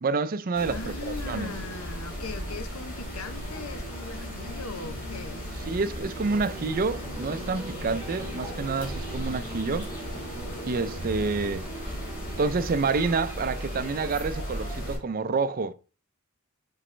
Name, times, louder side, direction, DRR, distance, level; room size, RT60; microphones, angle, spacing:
voice 1, 0.0-1.5 5.7-9.9 10.7-11.7 12.4-15.7, right 4 dB, 40° right, 0.5 m, -28 dB
sound 1, 0.5-15.0, equal, 40° left, 3.2 m, -36 dB
voice 2, 0.7-5.5, left 4 dB, 80° left, 0.8 m, -39 dB
sound 2, 6.2-14.3, right 1 dB, 10° right, 1.1 m, -45 dB
7.6 x 4.1 x 3.2 m
head